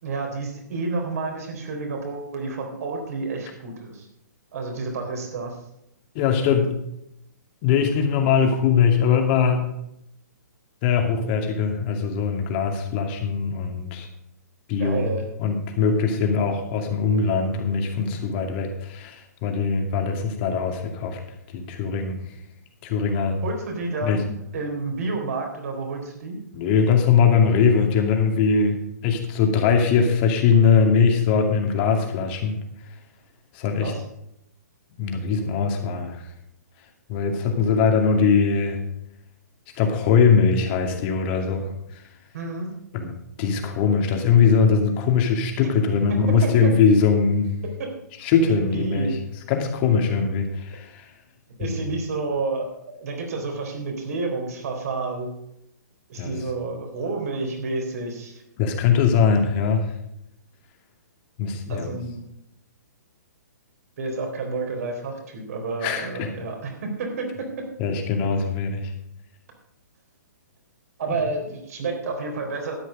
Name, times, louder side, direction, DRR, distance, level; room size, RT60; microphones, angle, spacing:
voice 1, 0.0-4.1 4.5-5.6 14.8-15.3 23.4-26.4 33.8-34.0 42.3-42.7 46.4-46.5 48.7-49.2 51.6-52.7 53.0-55.3 56.1-58.4 61.7-62.2 64.0-67.3 71.0-72.8, right 3 dB, 60° right, 2 dB, 3.8 m, -30 dB
voice 2, 6.1-6.7 7.6-9.6 10.8-14.1 14.7-15.1 15.4-21.2 21.5-22.2 22.8-23.4 24.0-24.2 26.5-32.6 33.5-33.9 35.0-36.3 37.1-38.8 39.8-42.0 42.9-43.1 43.4-47.5 48.2-49.2 49.5-51.0 51.6-51.8 56.1-56.3 58.6-59.9 61.4-62.0 65.8-66.3 67.8-68.9, left 6 dB, 35° left, 3 dB, 2.5 m, -21 dB
12.5 x 9.4 x 5.1 m, 0.78 s
hypercardioid pair, 130°, 10 cm